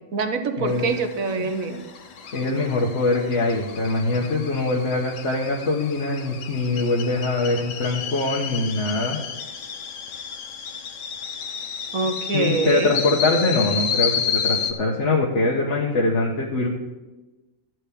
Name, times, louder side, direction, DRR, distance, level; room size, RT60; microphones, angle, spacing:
voice 1, 0.1-1.8 11.9-12.9, right 4 dB, 60° right, 7 dB, 1.3 m, -25 dB
sound 1, 0.7-14.7, left 7 dB, 90° left, 1.6 m, -31 dB
voice 2, 2.3-9.2 12.3-16.7, left 2 dB, 50° left, -2 dB, 1.4 m, -23 dB
13.5 x 4.6 x 8.5 m, 1.1 s
omnidirectional pair, 1.8 m